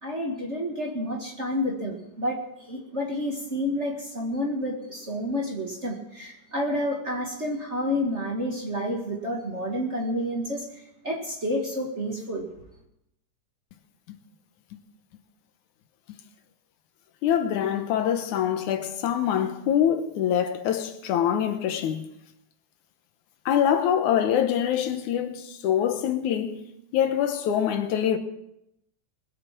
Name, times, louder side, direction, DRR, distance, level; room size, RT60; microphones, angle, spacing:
voice 1, 0.0-12.5, equal, 25° right, 1.8 m, -30 dB
voice 2, 17.2-22.0 23.5-26.6 26.9-28.2, left 9 dB, 80° left, 2.5 m, -24 dB
20.5 x 8.3 x 5.9 m
omnidirectional pair, 3.4 m